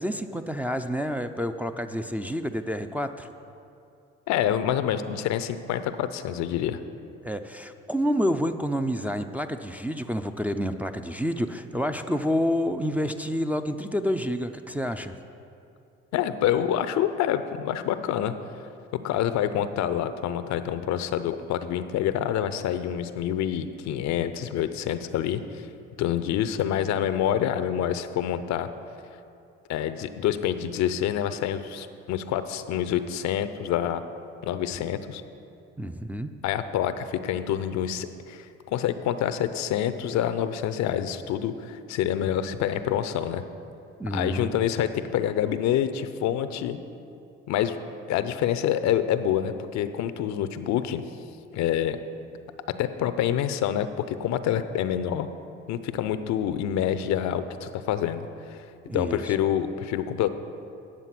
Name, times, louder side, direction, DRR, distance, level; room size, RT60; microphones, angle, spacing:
voice 1, 0.0-3.3 7.2-15.2 35.8-36.3 44.0-44.6 58.9-59.2, equal, 5° right, 5 dB, 0.5 m, -28 dB
voice 2, 4.3-6.8 16.1-18.3 19.0-25.7 26.0-28.7 29.7-34.0 34.4-35.2 36.4-43.4 44.1-46.8 47.5-47.8 48.1-51.0 51.5-52.0 52.8-55.3 55.7-58.6 58.9-60.3, left 10 dB, 70° left, 11 dB, 0.6 m, -27 dB
9.7 x 7.0 x 5.9 m, 2.6 s
supercardioid pair, 65°, 29 cm